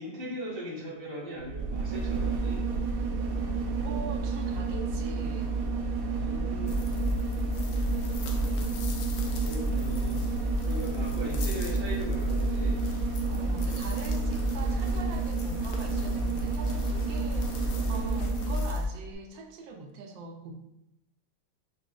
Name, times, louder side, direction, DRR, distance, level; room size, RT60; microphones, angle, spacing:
voice 1, 0.0-2.7 6.1-6.9 9.5-10.2 10.7-12.8, equal, 30° left, -7 dB, 0.4 m, -39 dB
sound 1, 1.4-18.8 19.1-19.2, right 4 dB, 70° right, 0.8 m, -31 dB
voice 2, 3.8-5.5 13.3-20.5, right 4 dB, 90° right, 2 dB, 1.3 m, -42 dB
sound 2, 6.7-18.9, left 1 dB, 75° left, 1.2 m, -33 dB
5.1 x 2.9 x 2.4 m, 0.84 s
omnidirectional pair, 2.0 m